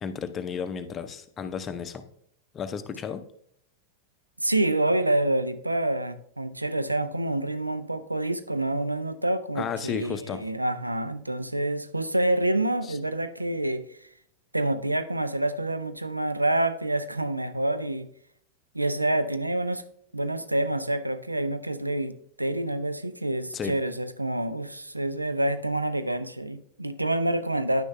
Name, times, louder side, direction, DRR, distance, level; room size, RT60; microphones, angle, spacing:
voice 1, 0.0-2.0 2.5-3.2 9.5-10.4 12.8-13.0 23.5-23.8, left 6 dB, 25° left, 10 dB, 0.5 m, -33 dB
voice 2, 4.4-13.8 14.5-18.1 18.7-19.8 20.1-27.8, right 1 dB, 85° right, 12 dB, 0.4 m, -27 dB
9.9 x 6.3 x 2.2 m, 0.67 s
figure-of-eight pair, 90°, 0 cm